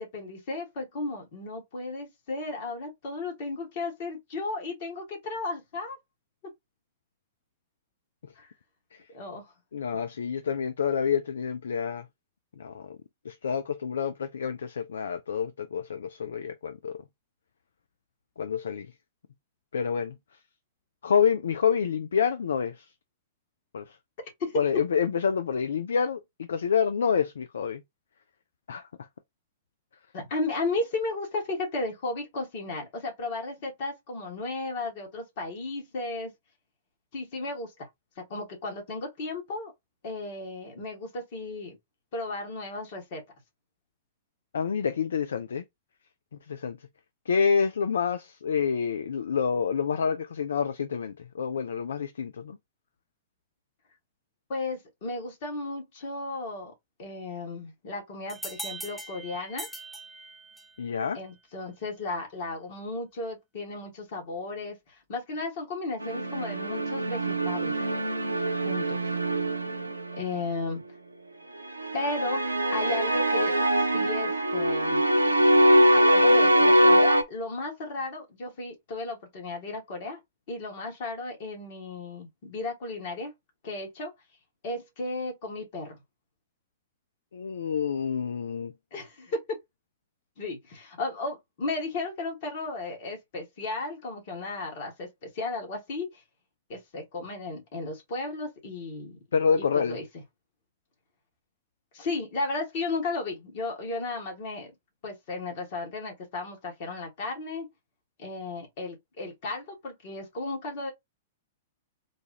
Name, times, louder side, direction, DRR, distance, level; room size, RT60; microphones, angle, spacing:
voice 1, 0.0-6.0 8.4-8.5 9.1-9.5 24.2-24.6 30.1-36.3 37.1-37.9 38.2-39.7 40.0-41.7 42.1-43.2 54.5-56.7 57.0-59.7 61.1-67.8 68.6-69.0 70.1-70.8 71.9-75.0 75.9-80.2 80.5-83.3 83.6-84.1 84.6-86.0 88.9-89.4 90.4-96.2 96.7-99.2 99.6-100.0 101.9-104.7 105.0-107.7 108.2-110.9, left 3 dB, 50° left, 1.8 m, -34 dB
voice 2, 9.7-12.1 12.6-13.0 13.2-17.0 18.4-18.9 19.7-20.2 21.0-22.9 23.7-24.0 24.5-27.8 28.7-28.9 44.5-45.6 46.5-46.8 47.3-52.6 60.8-61.2 87.3-88.7 99.3-100.0, left 6 dB, 70° left, 0.3 m, -28 dB
sound 1, 58.3-60.9, right 1 dB, 5° left, 0.7 m, -40 dB
sound 2, 66.0-70.4 71.8-77.2, right 1 dB, 90° right, 0.5 m, -23 dB
3.9 x 2.4 x 2.9 m
figure-of-eight pair, 105°, 0 cm